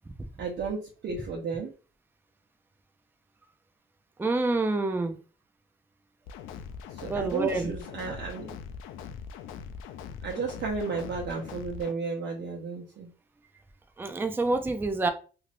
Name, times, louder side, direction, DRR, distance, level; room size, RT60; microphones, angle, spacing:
voice 1, 0.4-1.7 6.9-8.6 10.2-13.1, right 4 dB, 60° right, -2 dB, 0.8 m, -33 dB
voice 2, 4.2-5.2 7.1-7.7 14.0-15.1, right 3 dB, 10° right, 7 dB, 0.4 m, -27 dB
sound 1, 6.3-11.9, left 6 dB, 90° left, 0.4 m, -42 dB
3.2 x 2.6 x 2.5 m, 0.36 s
cardioid pair, 90°, 20 cm